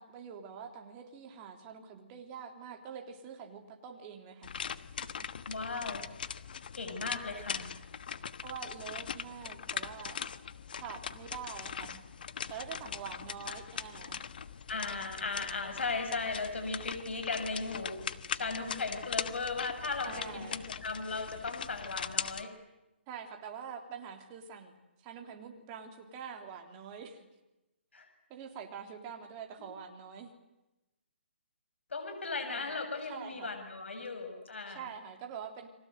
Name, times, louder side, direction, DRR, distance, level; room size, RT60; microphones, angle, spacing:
voice 1, 0.0-4.5 8.4-10.3 10.8-12.0 12.5-14.3 20.0-20.7 23.1-24.7 25.0-27.3 28.3-30.3 32.5-33.5 34.7-35.7, right 7 dB, 20° right, 3 dB, 3.3 m, -45 dB
sound 1, 4.4-22.4, left 7 dB, 50° left, 1.2 m, -41 dB
voice 2, 5.5-6.0 6.3-6.4 6.7-7.7 13.5-13.6 14.7-18.0 18.3-22.5 27.9-28.1 31.9-34.9, left 3 dB, 75° left, 7 dB, 6.6 m, -37 dB
30.0 x 24.0 x 8.0 m, 0.98 s
hypercardioid pair, 165°, 6 cm